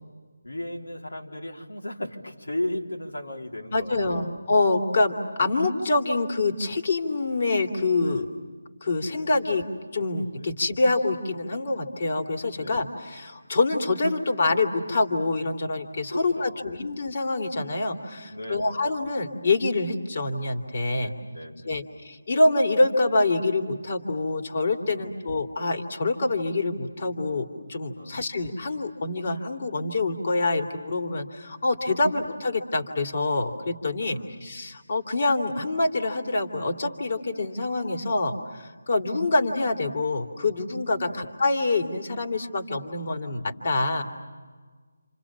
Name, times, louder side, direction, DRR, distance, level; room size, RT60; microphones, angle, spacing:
voice 1, 0.4-4.2 8.0-8.3 9.0-9.3 10.3-10.5 12.5-12.8 16.1-16.7 18.2-18.8 21.0-21.9 24.8-25.2 28.0-28.3 31.9-32.2 34.0-34.4 40.9-41.2, left 1 dB, 85° left, 0 dB, 4.1 m, -36 dB
voice 2, 3.7-8.3 8.8-9.6 9.9-21.1 21.6-44.0, left 2 dB, 45° left, 4 dB, 2.8 m, -26 dB
29.5 x 28.0 x 7.3 m, 1.5 s
figure-of-eight pair, 160°, 0 cm